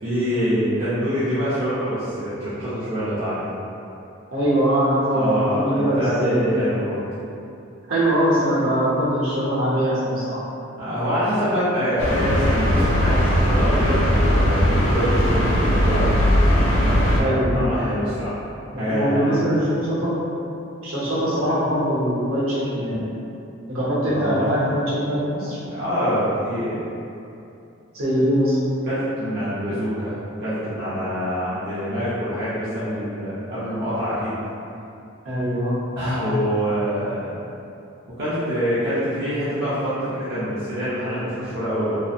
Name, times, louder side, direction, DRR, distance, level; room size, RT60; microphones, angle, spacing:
voice 1, 0.0-3.4 5.1-7.0 10.8-18.3 18.7-19.4 19.6-19.7 24.0-24.5 25.7-26.8 28.8-34.3 36.0-37.4 38.2-42.0, equal, 50° right, -13 dB, 0.5 m, -25 dB
voice 2, 4.3-6.6 7.9-10.4 17.1-17.7 18.7-20.2 20.8-23.1 23.7-25.6 27.9-28.6 35.2-35.8, equal, 85° right, -8 dB, 0.8 m, -22 dB
sound 1, 12.0-17.2, equal, 70° left, 0.4 m, -19 dB
2.7 x 2.0 x 2.4 m, 2.7 s
head